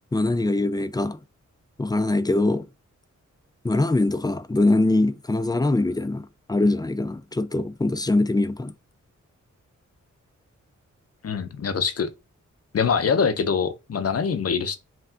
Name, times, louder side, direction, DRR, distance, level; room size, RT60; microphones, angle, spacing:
voice 1, 0.1-1.2 1.8-2.7 3.6-8.7, left 2 dB, 15° left, 0.3 m, -23 dB
voice 2, 11.2-12.1 12.7-14.8, left 6 dB, 50° left, 0.6 m, -24 dB
5.6 x 2.6 x 2.4 m
cardioid pair, 60°, 31 cm